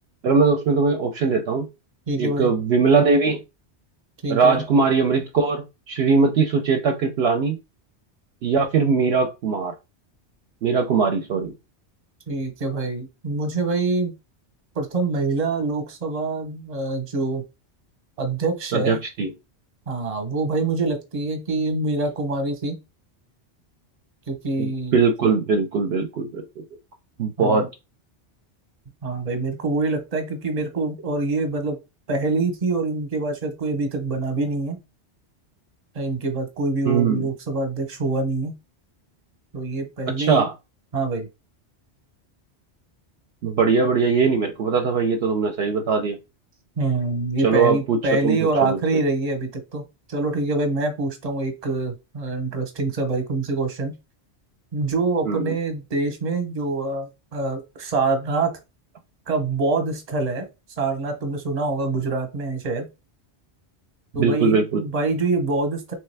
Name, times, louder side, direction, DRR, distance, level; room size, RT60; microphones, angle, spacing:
voice 1, 0.2-1.7 2.2-3.4 4.3-7.6 8.4-9.7 10.6-11.5 18.7-19.3 24.6-26.6 27.2-27.7 36.8-37.3 40.2-40.5 43.4-46.2 47.4-48.8 55.2-55.5 64.2-64.8, right 5 dB, 70° right, 0.8 m, -21 dB
voice 2, 2.1-2.5 4.2-4.6 12.3-14.1 14.8-17.4 18.2-19.0 19.9-22.8 24.3-25.0 27.4-27.7 29.0-31.8 32.1-34.8 35.9-38.6 39.5-40.5 40.9-41.3 46.8-53.9 54.7-58.5 59.3-60.5 60.8-62.9 64.1-65.9, right 3 dB, 35° right, 0.9 m, -25 dB
3.2 x 3.2 x 3.3 m
omnidirectional pair, 1.2 m